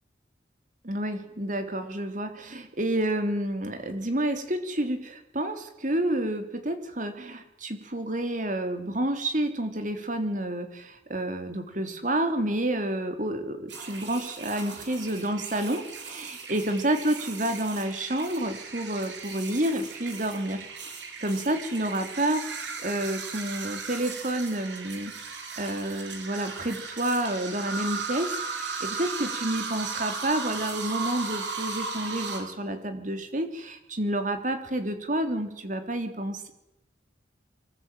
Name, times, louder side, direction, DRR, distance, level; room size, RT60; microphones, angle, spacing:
voice 1, 0.8-20.7 21.2-25.1 25.6-36.5, right 1 dB, 45° right, 8 dB, 3.3 m, -29 dB
sound 1, 13.7-32.4, right 4 dB, 75° right, 6.1 m, -37 dB
24.0 x 20.5 x 9.3 m, 0.87 s
head